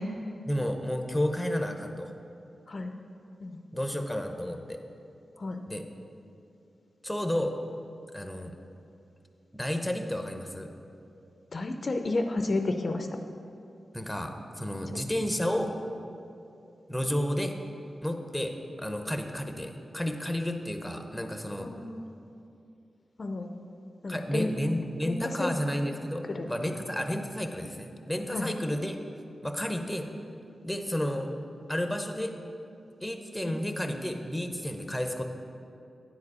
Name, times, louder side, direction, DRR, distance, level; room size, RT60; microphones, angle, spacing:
voice 1, 0.5-2.1 3.7-4.8 5.7-5.8 7.0-7.5 8.1-8.5 9.5-10.7 13.9-15.7 16.9-17.6 18.0-21.7 24.1-29.0 29.4-30.1 30.6-31.3 31.7-32.4 33.0-35.2, equal, 5° left, 5 dB, 0.6 m, -31 dB
voice 2, 11.5-13.1 21.6-22.1 23.2-23.5 24.0-24.5 25.1-25.5 26.3-26.6 28.3-28.5, left 2 dB, 50° left, 6 dB, 0.4 m, -31 dB
9.3 x 4.8 x 4.8 m, 2.7 s
cardioid pair, 75°, 0 cm